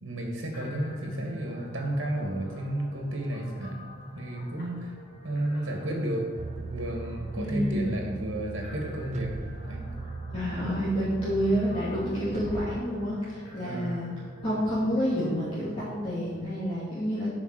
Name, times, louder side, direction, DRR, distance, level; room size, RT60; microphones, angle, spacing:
voice 1, 0.0-3.8 4.1-4.9 5.2-6.3 6.5-9.3 9.6-9.9 13.6-13.9, right 1 dB, 70° right, 1 dB, 2.2 m, -32 dB
sound 1, 0.5-16.7, equal, 55° left, 3.1 m, -46 dB
sound 2, 6.4-12.8, right 3 dB, 35° right, 0.4 m, -39 dB
voice 2, 7.4-7.9 10.3-14.1 14.4-17.3, equal, 30° left, -10 dB, 2.5 m, -29 dB
7.3 x 5.9 x 7.7 m, 1.4 s
head